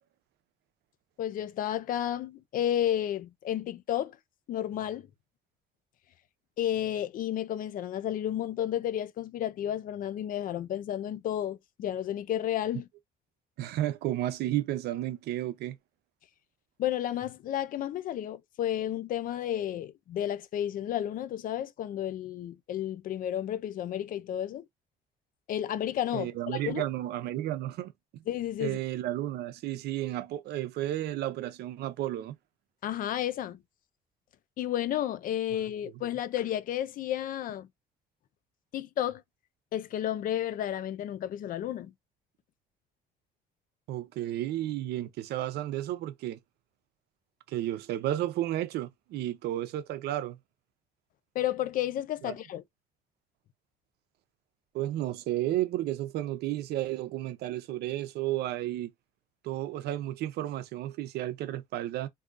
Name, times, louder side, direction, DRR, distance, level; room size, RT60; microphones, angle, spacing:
voice 1, 1.2-4.2 4.5-5.1 6.6-12.9 16.8-24.7 25.5-26.8 28.3-28.8 32.8-33.6 34.6-37.7 38.7-39.2 39.7-41.9 51.3-52.6, left 11 dB, 55° left, 0.5 m, -32 dB
voice 2, 13.6-15.8 26.1-28.2 28.6-32.4 43.9-46.4 47.5-50.4 52.2-52.3 54.7-58.9 59.4-62.1, right 13 dB, 75° right, 0.6 m, -32 dB
3.6 x 2.7 x 2.5 m
cardioid pair, 110°, 17 cm